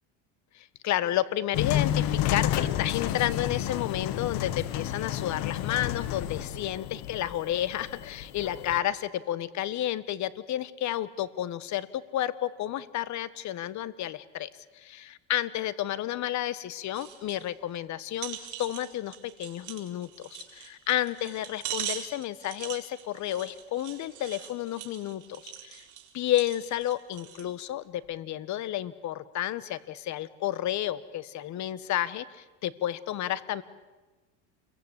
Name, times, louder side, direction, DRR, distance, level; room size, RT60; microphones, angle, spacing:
voice 1, 0.5-14.5 14.7-25.8 26.1-33.6, left 13 dB, 50° left, 16 dB, 1.5 m, -31 dB
sound 1, 1.5-8.8, left 12 dB, 65° left, 1.8 m, -30 dB
sound 2, 16.9-17.4 17.8-17.9 18.2-27.5 28.0-28.1, right 11 dB, 50° right, 4.5 m, -41 dB
28.5 x 23.0 x 8.3 m, 1.2 s
supercardioid pair, 120°, 38 cm